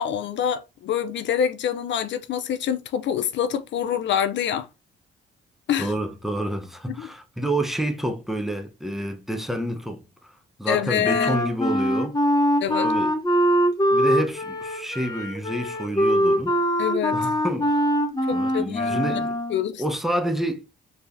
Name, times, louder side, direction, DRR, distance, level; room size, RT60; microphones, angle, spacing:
voice 1, 0.0-4.7 5.7-5.9 6.9-7.1 10.7-11.4 12.6-12.9 16.8-17.2 18.3-19.2 19.5-19.8, left 9 dB, 65° left, 0.5 m, -26 dB
voice 2, 5.8-12.2 12.7-13.1 13.9-16.6 17.1-17.8 18.3-19.4 19.8-20.6, right 1 dB, ahead, 0.9 m, -28 dB
Wind instrument woodwind instrument, 11.0-19.6, equal, 20° left, 1.1 m, -23 dB
4.5 x 3.5 x 2.6 m
cardioid pair, 90°, 20 cm